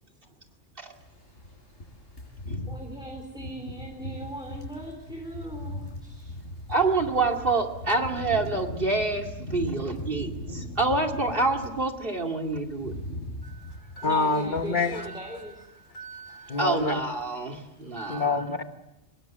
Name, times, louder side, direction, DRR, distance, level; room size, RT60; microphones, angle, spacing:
sound 1, 0.9-11.9 12.2-15.6 15.9-16.2 16.5-17.3 17.5-17.8, left 1 dB, 65° left, 6.4 m, -39 dB
voice 1, 2.7-6.3 14.0-15.6, equal, 5° right, 1 dB, 3.4 m, -39 dB
voice 2, 6.7-12.9 16.6-18.4, right 3 dB, 45° right, 3 dB, 2.7 m, -27 dB
voice 3, 14.0-15.1 16.0-16.9 18.0-18.6, left 3 dB, 40° left, 7 dB, 1.8 m, -27 dB
24.5 x 21.0 x 7.7 m, 0.94 s
omnidirectional pair, 1.3 m